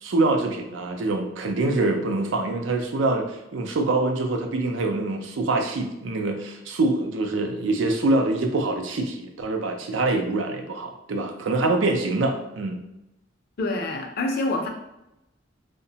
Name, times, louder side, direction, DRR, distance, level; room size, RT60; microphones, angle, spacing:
voice 1, 0.0-12.8, right 2 dB, 75° right, 4 dB, 0.4 m, -25 dB
voice 2, 13.6-14.7, left 2 dB, 55° left, 3 dB, 0.4 m, -26 dB
2.8 x 2.1 x 2.7 m, 0.88 s
head